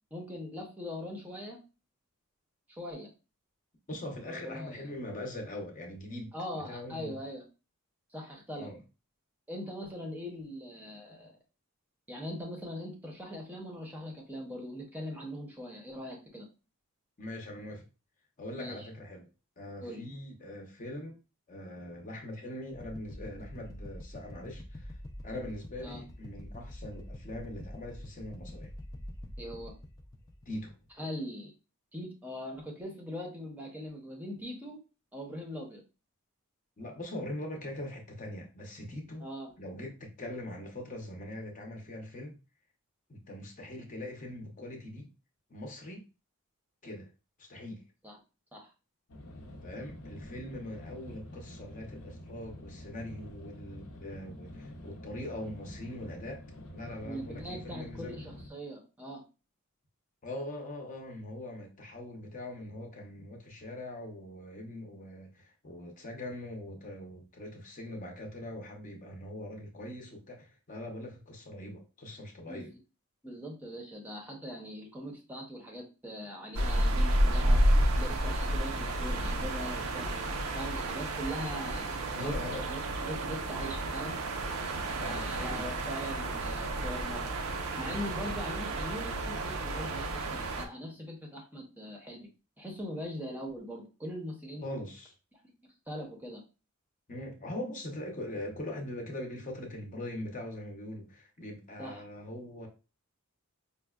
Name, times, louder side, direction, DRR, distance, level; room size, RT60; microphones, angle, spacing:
voice 1, 0.1-1.6 2.8-3.1 4.2-4.8 6.3-7.5 8.1-8.7 9.5-11.4 12.1-16.5 18.5-18.9 19.8-20.0 25.8-26.0 29.4-29.7 31.0-31.5 31.9-34.8 35.1-35.8 39.2-39.5 48.0-48.2 48.5-48.7 57.0-59.2 72.5-72.7 73.2-77.6 78.0-80.1 80.6-81.8 82.2-84.2 85.0-87.4 87.8-92.3 92.6-94.6 95.9-96.4 101.8-102.0, equal, 10° right, 0.7 m, -41 dB
voice 2, 3.9-6.3 6.6-7.2 8.5-8.8 17.2-17.8 18.4-19.3 19.6-21.2 21.5-24.9 25.2-28.7 30.5-30.7 36.8-39.3 39.6-42.4 43.1-45.1 45.5-46.1 46.8-47.1 47.4-47.8 49.6-56.4 56.7-58.2 60.2-72.7 82.1-82.7 84.9-85.7 88.2-88.4 94.6-95.1 97.1-102.7, left 1 dB, 35° left, 0.7 m, -42 dB
sound 1, 22.7-30.9, left 1 dB, 15° left, 0.3 m, -45 dB
sound 2, 49.1-58.5, left 1 dB, 80° left, 0.7 m, -47 dB
sound 3, 76.5-90.7, right 1 dB, 65° right, 0.5 m, -31 dB
5.2 x 2.2 x 2.3 m
head